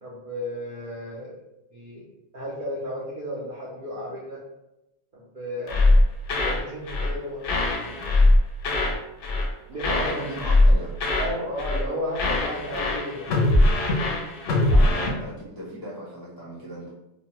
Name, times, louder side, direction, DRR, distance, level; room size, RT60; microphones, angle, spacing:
voice 1, 0.0-1.3 1.7-2.1 2.3-4.4 5.1-5.9 6.4-8.0 9.7-10.2 11.2-13.3, equal, 60° right, -7 dB, 0.5 m, -33 dB
sound 1, 5.7-6.6 6.9-7.2 7.4-9.0 9.2-9.5 9.8-11.3 11.6-11.9 12.1-15.1, left 2 dB, 65° left, 0.8 m, -21 dB
voice 2, 9.9-10.9 14.7-16.9, equal, 35° left, -8 dB, 0.3 m, -37 dB
2.9 x 2.0 x 2.9 m, 0.92 s
omnidirectional pair, 1.5 m